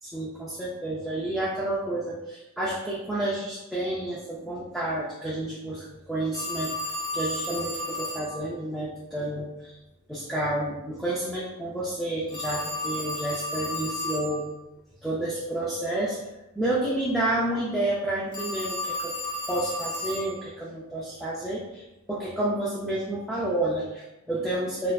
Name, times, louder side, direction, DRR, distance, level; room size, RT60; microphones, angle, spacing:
voice 1, 0.0-9.8 10.1-14.5 15.0-16.2 16.6-19.1 19.5-24.9, right 1 dB, ahead, -7 dB, 0.4 m, -30 dB
Telephone, 6.3-8.3 12.3-14.3 18.3-20.3, left 1 dB, 20° left, 0.8 m, -32 dB
4.1 x 2.6 x 2.3 m, 0.96 s
head